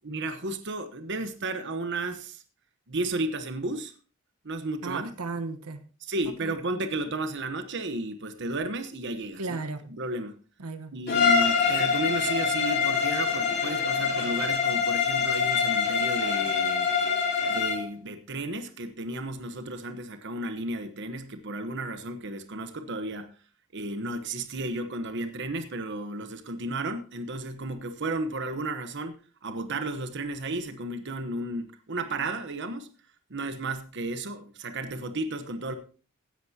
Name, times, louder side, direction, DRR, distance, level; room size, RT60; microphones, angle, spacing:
voice 1, 0.0-2.4 2.9-3.9 4.4-5.1 6.0-9.6 9.9-10.4 10.9-16.9 17.5-23.3 23.7-32.9 33.3-35.8, right 2 dB, 55° right, 9 dB, 1.1 m, -33 dB
voice 2, 4.8-5.9 6.4-6.6 9.4-9.9 10.6-10.9, right 3 dB, 85° right, 10 dB, 1.1 m, -35 dB
Bowed string instrument, 11.1-17.9, left 6 dB, 45° left, 3.8 m, -25 dB
16.0 x 10.5 x 2.8 m, 0.37 s
head